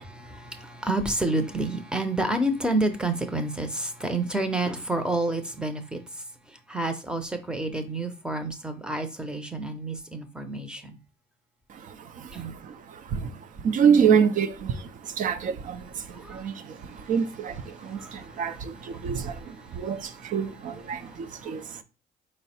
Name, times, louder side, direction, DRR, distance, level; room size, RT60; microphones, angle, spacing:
voice 1, 0.0-6.0 6.5-11.0 12.3-12.5 16.1-16.4 16.8-17.1 17.7-18.4 18.9-19.1 19.6-19.9 21.0-21.2 21.4-21.5, right 2 dB, 5° right, 0.6 m, -29 dB
voice 2, 11.7-21.8, right 7 dB, 50° right, 0.5 m, -27 dB
4.5 x 2.1 x 4.3 m
cardioid pair, 110°, 17 cm